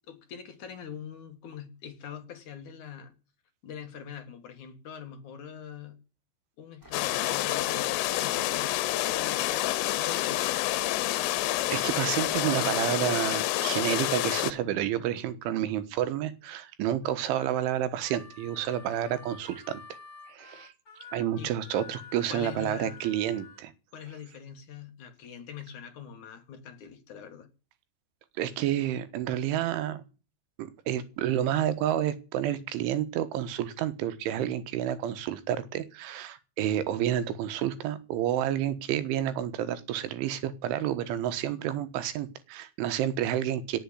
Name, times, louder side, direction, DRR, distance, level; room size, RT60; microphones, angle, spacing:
voice 1, 0.1-3.1 3.6-6.0 6.6-10.6 21.4-21.5 22.3-23.0 23.9-27.5, left 8 dB, 50° left, 2.7 m, -43 dB
sound 1, 6.8-12.5, equal, 5° right, 4.7 m, -52 dB
sound 2, 6.9-14.5, left 16 dB, 85° left, 3.5 m, -28 dB
voice 2, 11.7-19.8 20.3-20.7 21.1-23.7 28.4-30.0 30.6-43.8, right 11 dB, 75° right, 3.7 m, -30 dB
Harmonica, 17.0-23.6, left 5 dB, 25° left, 4.1 m, -49 dB
18.0 x 8.0 x 9.6 m
omnidirectional pair, 5.6 m